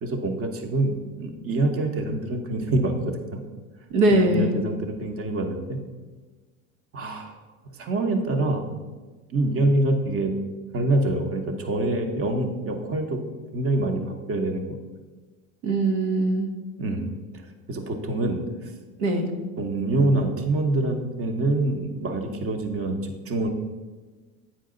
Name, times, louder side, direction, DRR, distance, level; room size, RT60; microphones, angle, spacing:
voice 1, 0.0-3.4 4.1-5.8 6.9-7.4 7.7-8.6 9.3-10.3 10.7-13.2 13.5-14.8 16.8-17.1 17.7-18.7 19.6-23.5, right 2 dB, 30° right, 5 dB, 1.0 m, -25 dB
voice 2, 3.9-4.6 15.6-16.5 19.0-19.3, right 1 dB, 75° right, 4 dB, 1.3 m, -21 dB
8.9 x 4.6 x 3.9 m, 1.3 s
hypercardioid pair, 90°, 43 cm